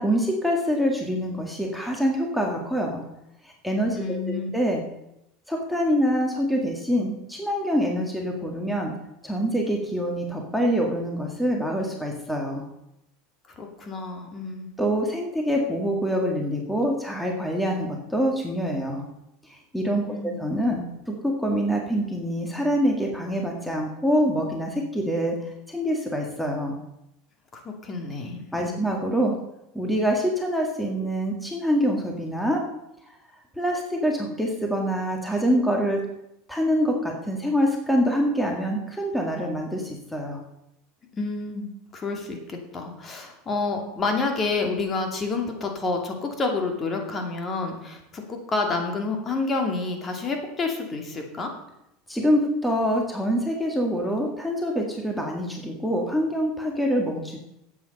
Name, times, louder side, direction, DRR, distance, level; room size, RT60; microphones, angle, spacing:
voice 1, 0.0-3.0 3.4-4.0 4.5-4.8 5.5-8.9 9.2-12.7 14.8-19.1 19.4-25.4 25.7-26.8 28.5-29.4 29.7-32.7 33.6-36.0 36.5-40.4 52.1-57.4, equal, ahead, 0 dB, 2.0 m, -25 dB
voice 2, 3.9-4.5 13.6-14.7 20.1-20.4 27.5-28.8 41.1-51.5, left 3 dB, 30° left, 3 dB, 2.5 m, -29 dB
12.5 x 8.7 x 5.4 m, 0.84 s
supercardioid pair, 115°, 0 cm